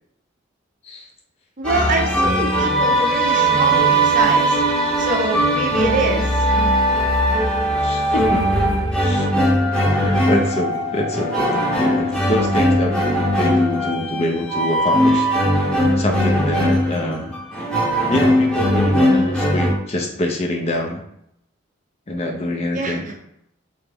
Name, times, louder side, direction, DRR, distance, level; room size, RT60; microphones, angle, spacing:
sound 1, 1.6-19.7, right 1 dB, 5° left, 0.8 m, -19 dB
voice 1, 1.6-4.6 5.0-6.4 22.7-23.2, right 2 dB, 40° right, 1 dB, 0.5 m, -24 dB
voice 2, 7.8-8.4 9.0-9.3 9.7-15.3 16.0-17.2 18.1-21.0 22.1-23.1, left 1 dB, 30° left, 1 dB, 0.4 m, -25 dB
Wind instrument woodwind instrument, 9.3-14.0, left 6 dB, 75° left, 0.6 m, -31 dB
3.3 x 3.0 x 3.4 m, 0.76 s
head